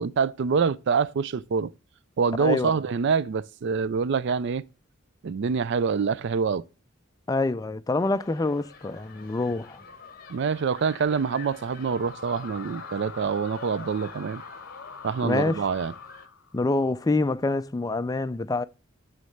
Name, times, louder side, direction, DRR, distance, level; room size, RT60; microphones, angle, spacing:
voice 1, 0.0-1.7 2.2-4.6 5.2-6.6 10.3-14.4 15.0-15.9, right 5 dB, 60° right, 0.4 m, -26 dB
voice 2, 2.4-2.8 7.3-9.8 15.2-15.6 16.5-18.6, left 2 dB, 20° left, 0.4 m, -26 dB
sound 1, 8.0-16.3, left 4 dB, 45° left, 1.1 m, -47 dB
sound 2, 11.7-16.7, left 5 dB, 75° left, 0.8 m, -44 dB
9.4 x 3.3 x 6.4 m
head